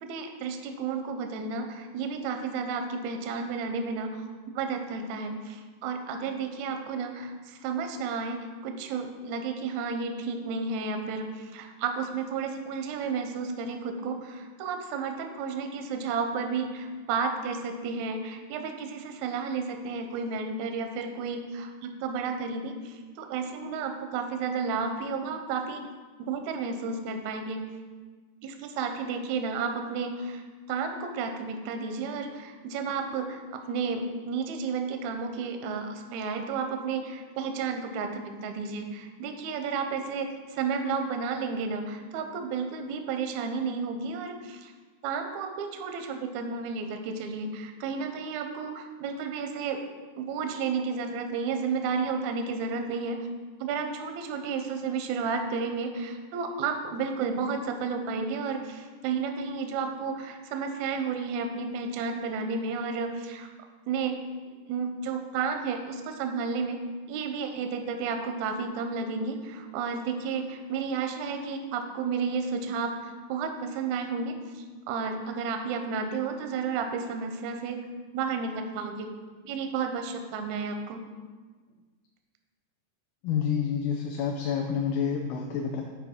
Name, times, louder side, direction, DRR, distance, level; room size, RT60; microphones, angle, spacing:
voice 1, 0.0-4.2 4.5-25.8 26.2-27.7 28.4-30.4 30.7-44.7 45.0-49.8 50.2-53.2 53.6-63.5 63.9-64.2 64.7-66.8 67.1-73.0 73.3-77.8 78.1-79.1 79.4-81.1, right 5 dB, 80° right, 5 dB, 1.6 m, -32 dB
voice 2, 83.2-85.8, left 7 dB, 80° left, 1 dB, 2.0 m, -28 dB
7.3 x 4.8 x 3.5 m, 1.4 s
omnidirectional pair, 3.8 m